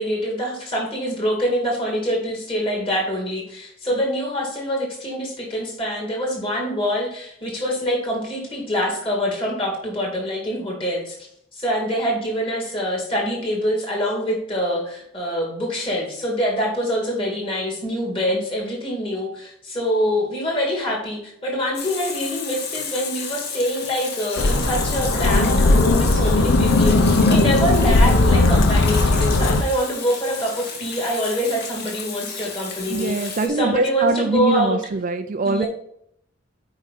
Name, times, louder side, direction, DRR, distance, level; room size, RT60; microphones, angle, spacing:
voice 1, 0.0-11.2 11.5-34.8 35.4-35.7, equal, 25° left, -1 dB, 2.6 m, -25 dB
Water tap faucet / Sink (filling or washing), 21.7-33.5, left 5 dB, 50° left, 1.5 m, -32 dB
sound 1, 24.4-29.6, left 2 dB, 75° left, 0.8 m, -17 dB
voice 2, 32.9-35.7, right 3 dB, 40° right, 9 dB, 0.4 m, -23 dB
8.9 x 5.0 x 4.2 m, 0.70 s
head